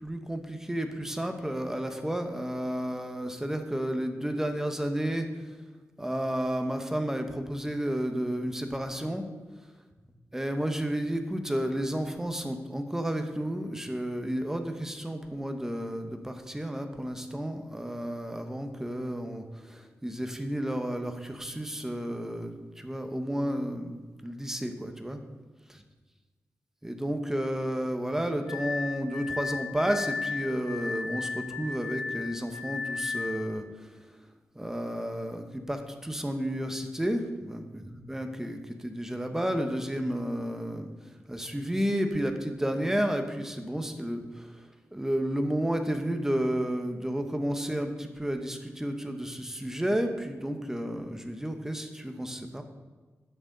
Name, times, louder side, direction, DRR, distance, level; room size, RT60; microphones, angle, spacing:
voice 1, 0.0-5.3 6.0-9.2 10.3-23.9 24.2-25.2 26.8-33.9 34.5-40.9 41.3-52.6, equal, 10° right, 6 dB, 1.1 m, -32 dB
Glass, 28.5-33.5, left 5 dB, 85° left, 1.5 m, -35 dB
10.5 x 9.1 x 4.0 m, 1.3 s
wide cardioid pair, 85°, 5 cm